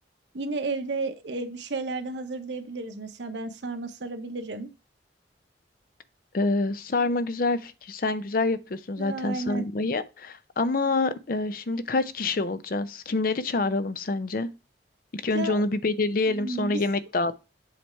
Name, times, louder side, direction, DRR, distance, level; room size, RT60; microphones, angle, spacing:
voice 1, 0.3-4.7 9.0-9.6 15.3-15.6 16.3-16.7, right 3 dB, 90° right, 1.0 m, -32 dB
voice 2, 6.3-14.5 15.1-17.4, left 3 dB, 50° left, 0.6 m, -27 dB
7.9 x 3.3 x 4.5 m
head